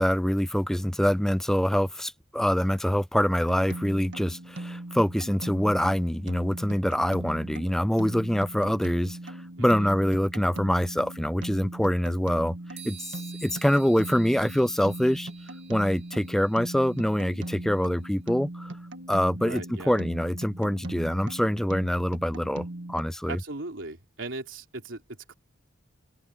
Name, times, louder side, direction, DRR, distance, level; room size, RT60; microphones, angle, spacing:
voice 1, 0.0-15.3 15.7-18.7 19.1-23.4, equal, ahead, 0.3 m, -25 dB
sound 1, 3.5-23.0, right 1 dB, 70° right, 1.7 m, -39 dB
voice 2, 9.6-9.9 19.4-20.0 23.3-25.3, right 2 dB, 90° right, 3.4 m, -38 dB
sound 2, 12.8-18.1, right 9 dB, 35° right, 5.2 m, -51 dB
open air
head